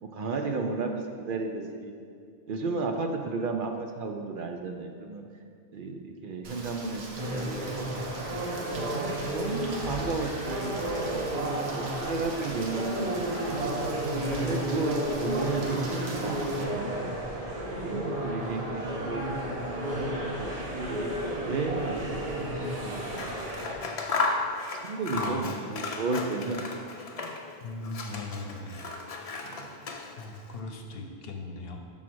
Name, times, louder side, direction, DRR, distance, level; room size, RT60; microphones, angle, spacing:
voice 1, 0.0-1.9 2.5-5.2 5.7-7.0 7.3-8.0 8.7-11.3 11.7-13.1 13.6-13.8 14.3-17.2 17.8-19.6 20.2-23.3 24.7-26.6 27.2-27.3 29.4-29.7, right 3 dB, 60° right, 3 dB, 0.7 m, -33 dB
Rain, 6.4-16.6, right 2 dB, 80° right, 1.1 m, -43 dB
sound 1, 7.2-23.7, right 1 dB, 40° right, 0.9 m, -32 dB
Scissors, 23.0-27.5 27.8-30.4, left 3 dB, 45° left, 0.5 m, -34 dB
voice 2, 25.1-25.7 27.6-28.8 30.2-31.8, left 3 dB, 70° left, 3 dB, 0.9 m, -39 dB
6.0 x 3.8 x 6.0 m, 2.2 s
omnidirectional pair, 1.1 m